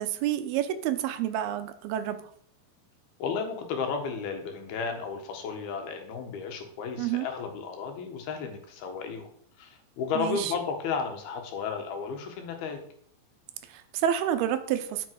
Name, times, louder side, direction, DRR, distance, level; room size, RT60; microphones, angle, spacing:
voice 1, 0.0-2.2 7.0-7.3 10.2-10.5 13.7-15.1, right 10 dB, 90° right, 10 dB, 2.8 m, -29 dB
voice 2, 3.2-9.3 9.6-12.8, left 5 dB, 85° left, 4 dB, 3.6 m, -33 dB
13.0 x 7.2 x 4.7 m, 0.62 s
omnidirectional pair, 4.3 m